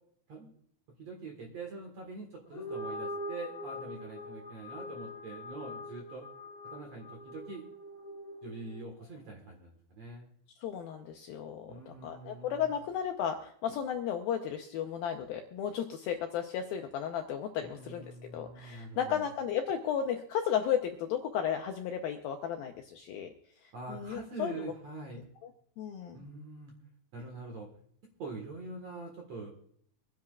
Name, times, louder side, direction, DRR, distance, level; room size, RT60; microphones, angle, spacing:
voice 1, 1.0-6.3 6.7-7.6 8.4-10.3 11.7-12.8 17.6-19.3 23.7-25.2 26.1-26.8 27.1-27.7 28.2-29.5, right 3 dB, 55° right, 1 dB, 2.0 m, -44 dB
sound 1, 2.4-9.0, left 1 dB, 30° left, 2.4 m, -43 dB
voice 2, 10.6-18.1 18.3-23.3 23.6-24.7 25.4-25.5 25.8-26.2, left 8 dB, 80° left, 4 dB, 2.2 m, -34 dB
25.0 x 10.5 x 2.4 m, 0.65 s
omnidirectional pair, 5.0 m